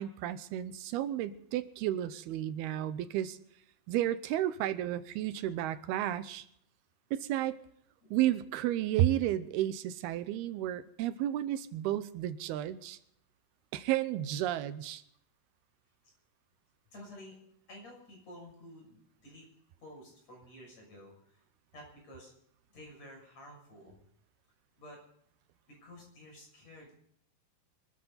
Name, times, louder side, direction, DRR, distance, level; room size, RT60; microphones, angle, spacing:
voice 1, 0.0-3.4 3.9-6.5 7.1-7.6 8.1-13.0 13.7-15.0, right 13 dB, 80° right, 13 dB, 2.7 m, -32 dB
voice 2, 16.9-17.4 17.7-19.4 19.8-21.4 21.7-22.3 22.7-24.0 24.8-25.0 25.7-26.9, left 1 dB, 45° left, 0 dB, 7.7 m, -51 dB
24.5 x 13.5 x 4.1 m, 0.70 s
omnidirectional pair, 4.5 m